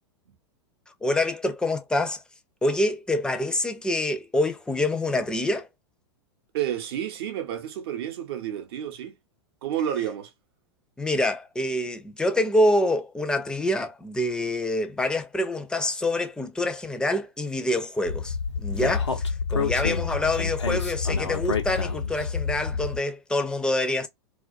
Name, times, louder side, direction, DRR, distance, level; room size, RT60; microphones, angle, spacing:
voice 1, 1.0-2.2 2.6-5.7 11.0-19.2 19.5-24.1, left 1 dB, 5° left, 0.5 m, -26 dB
voice 2, 6.5-9.2 9.6-10.3, right 10 dB, 60° right, 0.7 m, -30 dB
Speech, 18.1-23.0, left 5 dB, 90° left, 0.6 m, -28 dB
2.3 x 2.2 x 2.5 m
hypercardioid pair, 100°, 14 cm